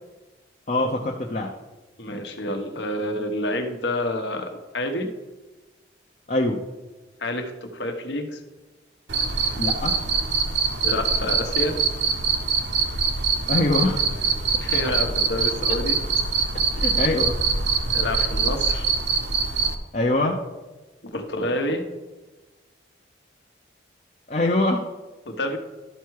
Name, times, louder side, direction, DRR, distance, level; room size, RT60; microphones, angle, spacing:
voice 1, 0.7-1.5 6.3-6.6 9.6-10.0 13.5-14.0 16.8-17.4 19.9-20.4 24.3-24.8, left 2 dB, 40° left, 0 dB, 0.7 m, -23 dB
voice 2, 2.0-4.5 4.7-5.1 7.2-8.4 10.8-11.8 14.6-16.0 17.9-18.9 21.0-21.8 25.2-25.6, left 1 dB, 70° left, 5 dB, 1.1 m, -28 dB
Cricket, 9.1-19.7, right 5 dB, 65° right, 0.9 m, -24 dB
12.0 x 4.6 x 4.7 m, 1.2 s
head